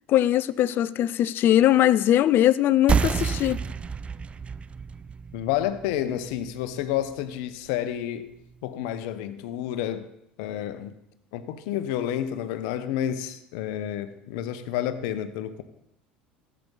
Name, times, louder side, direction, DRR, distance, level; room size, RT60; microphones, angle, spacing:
voice 1, 0.1-3.6, left 12 dB, 45° left, 0.4 m, -21 dB
sound 1, 2.9-8.0, right 6 dB, 25° right, 0.4 m, -30 dB
voice 2, 5.3-8.3 8.6-10.1 10.4-11.0 11.3-15.6, left 11 dB, 65° left, 0.8 m, -30 dB
13.5 x 8.4 x 4.0 m
hypercardioid pair, 75°, 5 cm